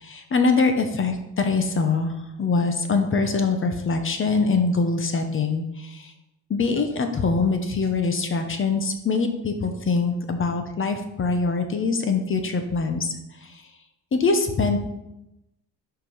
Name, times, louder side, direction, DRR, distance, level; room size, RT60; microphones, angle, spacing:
voice 1, 0.0-6.1 6.5-13.1 14.1-14.8, left 4 dB, 35° left, 7 dB, 0.9 m, -23 dB
5.9 x 4.9 x 5.5 m, 0.91 s
cardioid pair, 120°, 36 cm